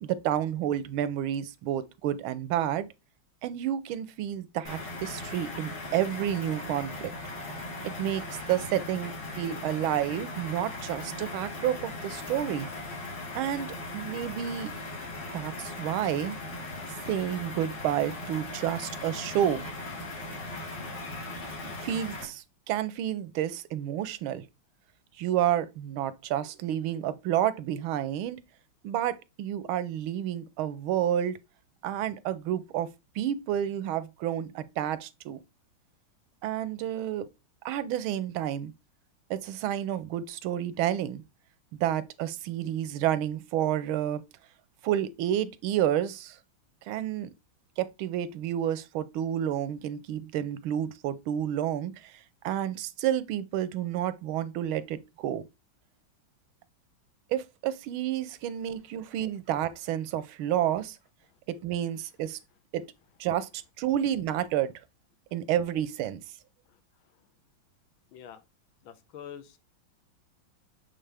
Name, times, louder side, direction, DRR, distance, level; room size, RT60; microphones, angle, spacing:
voice 1, 0.0-2.9 3.4-8.2 8.5-12.7 13.3-14.7 15.3-16.4 17.1-19.6 21.3-21.4 21.8-24.4 25.2-28.4 28.8-31.4 31.8-32.9 33.2-35.4 36.4-37.3 37.6-38.7 39.3-41.2 41.8-44.2 44.8-46.4 46.9-47.3 47.8-55.4 57.3-61.0 61.5-62.4 62.7-62.8 63.2-64.7 65.3-66.2, right 11 dB, 90° right, 1.5 m, -30 dB
sound 1, 4.7-22.2, left 2 dB, 60° left, 2.4 m, -39 dB
voice 2, 68.1-68.4 68.8-69.6, left 9 dB, 90° left, 1.6 m, -45 dB
7.7 x 3.7 x 3.4 m
omnidirectional pair, 2.2 m